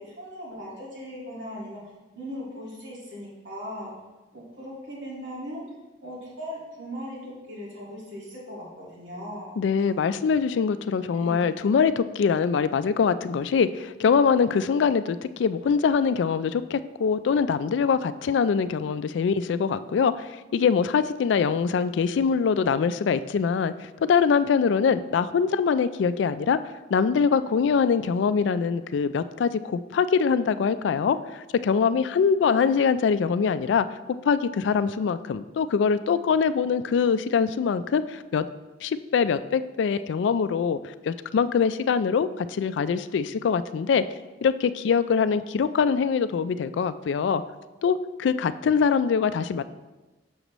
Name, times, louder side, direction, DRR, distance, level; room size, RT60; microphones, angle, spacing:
voice 1, 0.0-3.9 4.3-5.6 6.0-9.5 9.8-9.9 11.1-11.5, equal, 85° right, -5 dB, 2.0 m, -38 dB
voice 2, 9.6-26.6 26.9-33.9 34.2-38.5 38.8-44.0 44.4-47.4 47.8-49.6, left 6 dB, 70° left, 13 dB, 0.3 m, -23 dB
7.0 x 6.6 x 3.0 m, 1.1 s
head